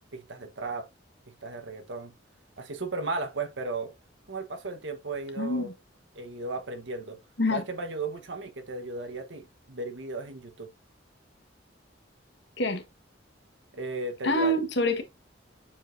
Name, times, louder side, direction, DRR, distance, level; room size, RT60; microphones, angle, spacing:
voice 1, 0.1-0.9 1.4-2.1 2.6-3.9 4.3-5.7 6.1-7.2 7.5-10.7 13.7-14.6, right 3 dB, 75° right, 1.3 m, -35 dB
voice 2, 5.4-5.7 7.4-7.6 12.6-12.8 14.2-15.0, left 1 dB, 65° left, 1.4 m, -26 dB
7.3 x 4.9 x 2.7 m
head